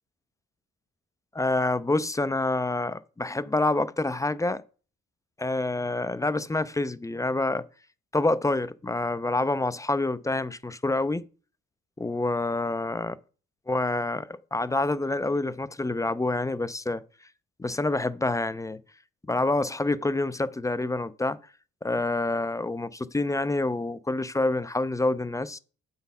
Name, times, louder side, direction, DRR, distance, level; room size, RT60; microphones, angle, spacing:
voice 1, 1.3-4.6 5.4-7.6 8.1-11.3 12.0-13.2 13.7-17.0 17.6-18.8 19.3-21.4 21.8-25.6, left 2 dB, 10° left, 0.3 m, -27 dB
7.9 x 4.0 x 5.4 m
cardioid pair, 90°, 30 cm